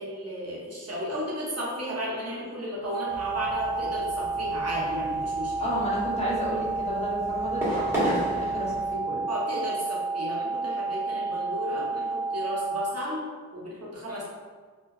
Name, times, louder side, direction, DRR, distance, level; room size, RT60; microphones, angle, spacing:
voice 1, 0.0-5.7 9.3-14.2, equal, 55° right, -6 dB, 0.8 m, -34 dB
sound 1, 2.9-12.9, right 4 dB, 50° left, 1.0 m, -31 dB
sound 2, 3.1-8.9, equal, 10° right, 1.1 m, -35 dB
voice 2, 5.6-9.2, equal, 20° left, -8 dB, 0.8 m, -32 dB
2.7 x 2.1 x 2.3 m, 1.5 s
wide cardioid pair, 45°, 30 cm